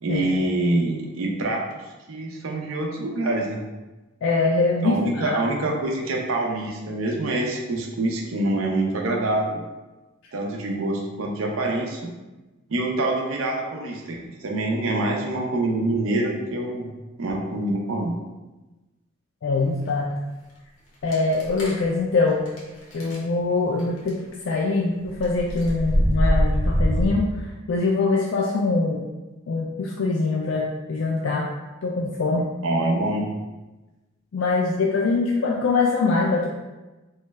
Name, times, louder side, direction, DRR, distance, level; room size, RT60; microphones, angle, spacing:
voice 1, 0.0-1.6 2.1-3.6 4.8-9.6 10.3-12.0 12.7-16.9 17.2-18.1 32.6-33.3, right 2 dB, 85° right, 0 dB, 0.6 m, -25 dB
voice 2, 4.2-5.4 19.4-20.1 21.0-22.5 22.9-24.2 24.5-27.3 27.7-29.0 29.5-31.5 31.8-32.5 34.3-36.5, left 3 dB, 70° left, -1 dB, 0.3 m, -23 dB
sound 1, 21.1-21.8 22.4-22.6 22.9-23.1 23.8-24.1 25.0-27.1, equal, 90° left, 1.0 m, -22 dB
3.1 x 2.3 x 3.1 m, 1.1 s
head